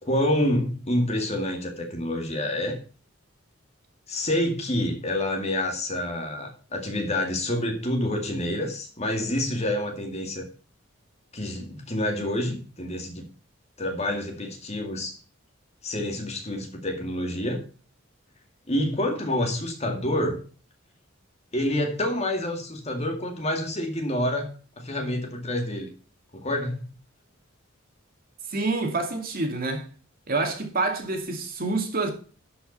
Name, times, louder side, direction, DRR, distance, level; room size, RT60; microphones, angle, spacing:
voice 1, 0.0-2.8 4.1-10.5 11.3-13.3 13.8-15.2 15.8-17.6 18.7-20.4 21.5-24.5 24.8-25.9 26.3-26.8, left 1 dB, 30° left, 2.2 m, -27 dB
voice 2, 28.5-29.8 30.3-32.1, right 3 dB, 45° right, 2.3 m, -27 dB
12.0 x 5.8 x 5.4 m
head